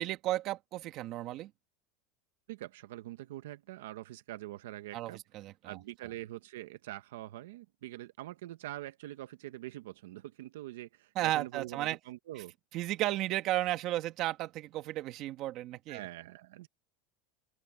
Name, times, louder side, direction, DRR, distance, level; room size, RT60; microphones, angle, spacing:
voice 1, 0.0-1.5 4.9-5.8 11.2-12.0 12.7-16.0, right 15 dB, 45° right, 2.1 m, -34 dB
voice 2, 2.5-5.2 5.6-12.5 15.9-16.7, right 15 dB, 90° right, 1.0 m, -44 dB
open air
supercardioid pair, 145°, 0 cm